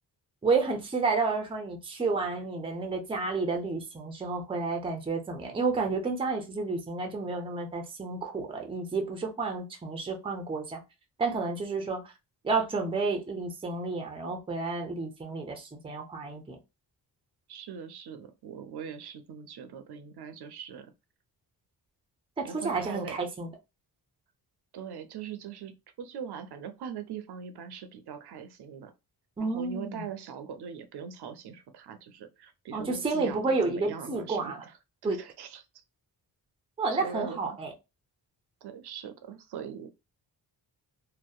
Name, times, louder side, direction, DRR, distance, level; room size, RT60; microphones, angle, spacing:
voice 1, 0.4-10.8 11.2-12.0 12.4-16.6 22.4-23.5 29.4-30.0 32.7-34.6 35.0-35.2 36.8-37.7, right 4 dB, 15° right, 0.4 m, -30 dB
voice 2, 17.5-20.9 22.4-23.2 24.7-25.7 26.0-28.9 29.4-34.7 35.0-35.6 36.9-37.4 38.6-39.9, right 7 dB, 65° right, 0.5 m, -41 dB
2.6 x 2.1 x 2.3 m
wide cardioid pair, 125°, 42 cm